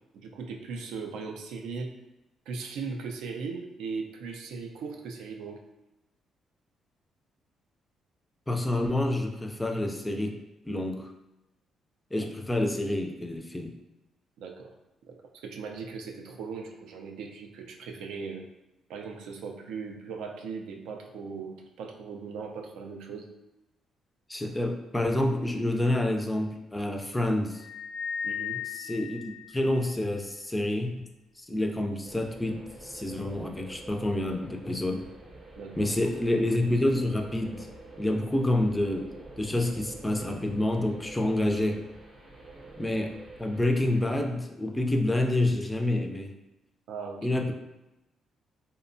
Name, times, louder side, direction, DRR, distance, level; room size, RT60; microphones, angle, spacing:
voice 1, 0.1-1.9 2.5-5.6 14.4-14.7 15.1-18.4 18.9-23.3 28.2-28.6 35.6-35.9 46.9-47.4, right 5 dB, 85° right, 3 dB, 0.3 m, -38 dB
voice 2, 8.5-10.4 10.6-11.1 12.1-13.7 24.3-27.6 28.7-29.2 29.5-31.1 31.4-35.0 35.8-37.7 38.0-39.1 39.4-41.8 42.8-43.1 43.4-46.3 47.2-47.5, left 1 dB, 10° left, 4 dB, 0.3 m, -28 dB
sound 1, 27.6-30.2, left 8 dB, 85° left, 0.5 m, -37 dB
sound 2, 32.0-44.3, right 2 dB, 40° right, 0.6 m, -47 dB
2.7 x 2.1 x 2.5 m, 0.95 s
cardioid pair, 90°, 0 cm